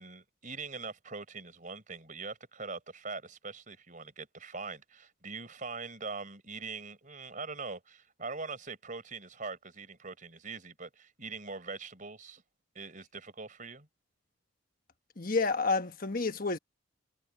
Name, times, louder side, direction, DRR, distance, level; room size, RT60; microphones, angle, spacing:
voice 1, 0.0-12.4 12.7-13.9, right 4 dB, 40° right, 4.6 m, -42 dB
voice 2, 15.2-16.6, left 4 dB, 45° left, 1.2 m, -29 dB
head